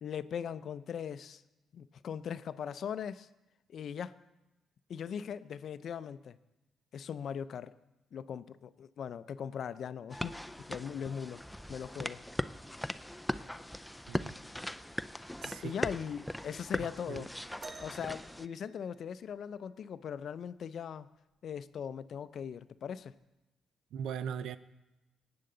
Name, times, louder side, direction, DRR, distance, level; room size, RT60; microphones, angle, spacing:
voice 1, 0.0-1.4 1.7-3.3 3.7-4.2 4.9-6.4 6.9-7.7 8.1-10.4 10.7-11.4 11.7-12.2 15.4-17.3 17.8-21.1 21.4-23.1, left 8 dB, 60° left, 14 dB, 0.5 m, -40 dB
sound 1, 10.1-18.5, left 1 dB, 5° left, 0.4 m, -39 dB
voice 2, 15.4-15.7 16.8-17.2 23.9-24.6, right 8 dB, 80° right, 14 dB, 0.5 m, -39 dB
sound 2, 17.6-19.5 21.2-21.3 22.1-22.3 23.2-23.3, right 3 dB, 30° right, 1.1 m, -51 dB
18.5 x 8.8 x 3.8 m, 1.0 s
cardioid pair, 90°, 0 cm